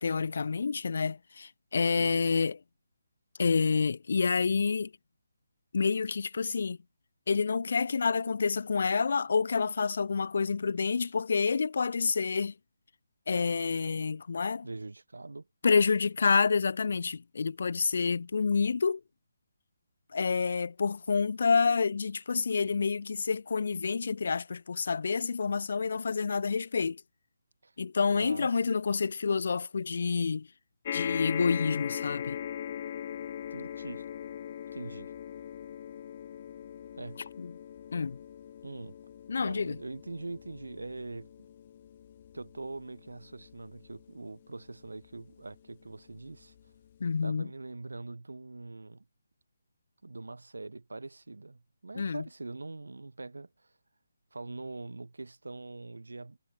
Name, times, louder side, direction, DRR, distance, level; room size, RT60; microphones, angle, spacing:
voice 1, 0.0-2.6 3.4-4.9 5.7-6.8 7.3-12.5 13.3-14.7 15.6-19.0 20.1-27.0 27.8-30.5 30.9-32.4 37.4-37.5 37.9-38.2 39.3-39.8 47.0-47.5 52.0-52.2, left 5 dB, 60° left, 0.6 m, -28 dB
voice 2, 14.6-15.5 27.6-27.7 28.1-28.6 33.5-34.1 34.7-35.1 37.0-37.3 38.6-38.9 39.4-41.3 42.3-46.5 47.2-49.1 50.0-53.7 54.3-56.4, right 3 dB, 85° right, 6.0 m, -43 dB
sound 1, 30.8-45.4 46.2-46.3 46.5-46.6, left 9 dB, 35° left, 1.3 m, -40 dB
figure-of-eight pair, 155°, 0 cm